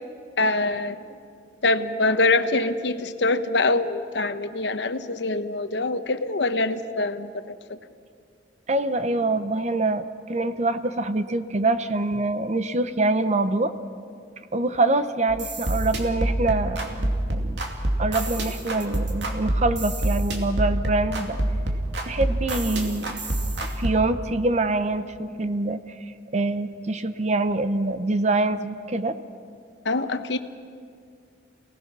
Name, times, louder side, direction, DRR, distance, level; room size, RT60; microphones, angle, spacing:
voice 1, 0.4-1.0 1.6-7.8 29.8-30.4, left 2 dB, 75° left, 10 dB, 1.0 m, -24 dB
voice 2, 8.7-13.7 14.5-17.6 18.0-21.4 22.0-23.2 23.8-25.8 26.3-29.2, right 2 dB, 40° right, 11 dB, 0.9 m, -25 dB
sound 1, 15.3-23.9, right 1 dB, 75° right, 2.6 m, -26 dB
28.5 x 18.0 x 6.2 m, 2.2 s
head